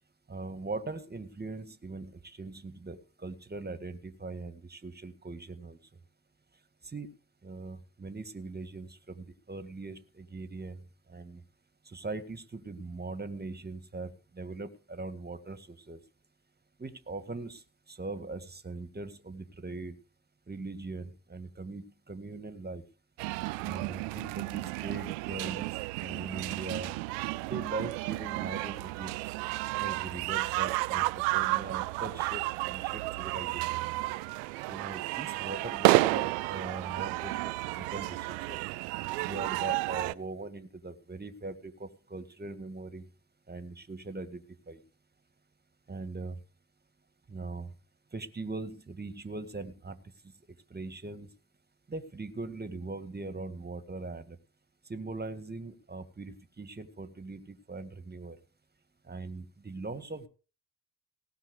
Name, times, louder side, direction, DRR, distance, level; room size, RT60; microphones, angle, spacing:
voice 1, 0.3-5.8 6.9-7.1 7.4-10.8 11.1-11.4 11.9-16.0 16.8-17.6 17.9-20.0 20.5-22.8 23.6-25.7 26.0-26.9 27.4-29.2 29.8-33.8 34.7-37.4 37.8-38.6 39.2-43.1 43.5-44.8 45.9-46.4 47.3-47.7 48.1-50.0 50.7-51.3 51.9-54.4 54.9-58.4 59.1-60.3, right 3 dB, 20° right, 12 dB, 1.8 m, -41 dB
sound 1, 23.2-40.1, right 21 dB, 75° right, 0.6 m, -32 dB
18.0 x 6.0 x 6.5 m, 0.36 s
hypercardioid pair, 50°, 46 cm